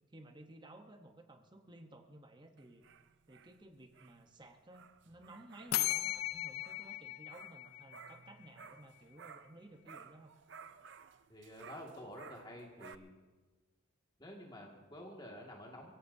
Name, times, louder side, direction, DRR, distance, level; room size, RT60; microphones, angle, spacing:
voice 1, 0.1-2.8 3.3-10.3, right 1 dB, 20° right, 6 dB, 0.9 m, -56 dB
sound 1, 2.6-9.6 9.8-13.0, right 6 dB, 55° right, 0.5 m, -56 dB
sound 2, 5.7-8.5, left 14 dB, 85° left, 0.4 m, -37 dB
voice 2, 11.3-13.1 14.2-16.0, left 1 dB, 20° left, -1 dB, 2.0 m, -50 dB
23.0 x 17.0 x 2.7 m, 1.3 s
head